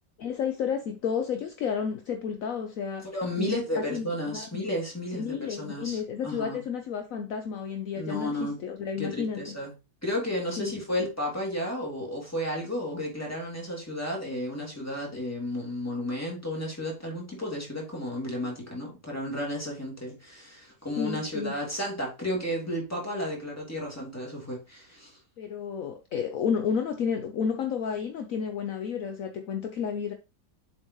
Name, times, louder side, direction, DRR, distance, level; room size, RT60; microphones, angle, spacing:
voice 1, 0.2-3.0 3.4-4.6 5.1-9.6 10.6-10.7 21.0-21.5 25.4-30.1, left 7 dB, 65° left, 0.8 m, -31 dB
voice 2, 3.1-6.6 8.0-8.6 9.0-9.7 10.0-25.2, left 1 dB, 10° left, 2.5 m, -33 dB
7.2 x 5.4 x 3.1 m
omnidirectional pair, 2.1 m